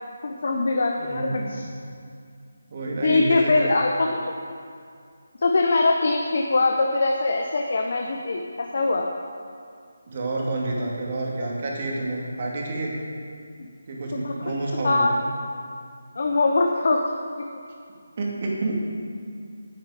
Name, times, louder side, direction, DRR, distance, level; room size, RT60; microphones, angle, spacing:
voice 1, 0.2-1.7 3.0-4.1 5.4-9.1 13.6-13.7 14.2-14.3 14.8-15.2 16.2-17.0, left 3 dB, 55° left, 2 dB, 0.9 m, -22 dB
voice 2, 1.0-1.6 2.7-3.5 10.1-12.9 13.9-15.1 18.2-18.8, right 2 dB, 35° right, -2 dB, 2.0 m, -28 dB
9.6 x 9.2 x 4.9 m, 2.3 s
figure-of-eight pair, 170°, 0 cm